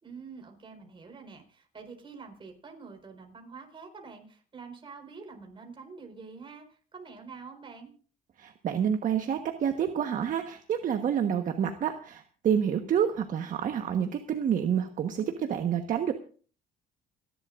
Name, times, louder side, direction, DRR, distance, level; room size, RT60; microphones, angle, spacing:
voice 1, 0.0-7.9, right 5 dB, 30° right, 3 dB, 4.6 m, -46 dB
voice 2, 8.4-16.1, right 8 dB, 50° right, 5 dB, 1.3 m, -28 dB
29.5 x 11.5 x 2.6 m, 0.41 s
cardioid pair, 110°, 17 cm